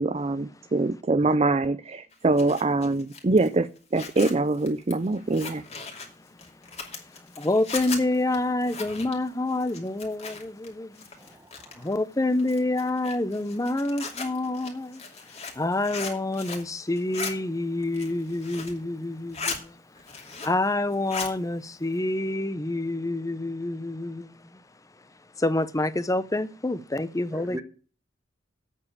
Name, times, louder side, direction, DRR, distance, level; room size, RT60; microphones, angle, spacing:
voice 1, 0.0-5.6, right 2 dB, 35° right, 0.5 m, -24 dB
Zipper (clothing), 2.1-10.7 10.9-11.9 12.4-16.7 17.0-17.3 17.8-18.8 19.1-19.6 20.0-20.7 20.9-21.3, left 4 dB, 35° left, 2.6 m, -38 dB
voice 2, 7.4-11.1 11.8-15.0 15.6-19.8 20.1-24.6 25.4-27.6, left 2 dB, 20° left, 0.7 m, -27 dB
voice 3, 11.2-12.0 14.0-14.1 27.3-27.6, right 1 dB, 15° right, 1.0 m, -40 dB
8.4 x 7.1 x 8.5 m
head